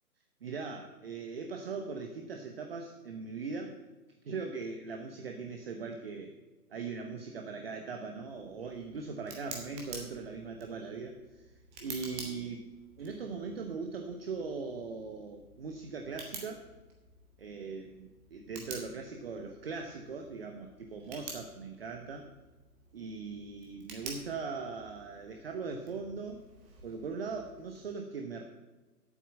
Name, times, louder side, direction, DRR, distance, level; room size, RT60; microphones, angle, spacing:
voice 1, 0.4-3.8 4.2-6.4 6.7-12.7 13.0-16.6 17.4-22.3 22.9-26.4 26.8-28.4, right 4 dB, 40° right, 4 dB, 1.0 m, -40 dB
Tick, 8.3-27.9, right 4 dB, 15° right, 1.3 m, -50 dB
8.7 x 8.5 x 7.3 m, 1.1 s
figure-of-eight pair, 140°, 46 cm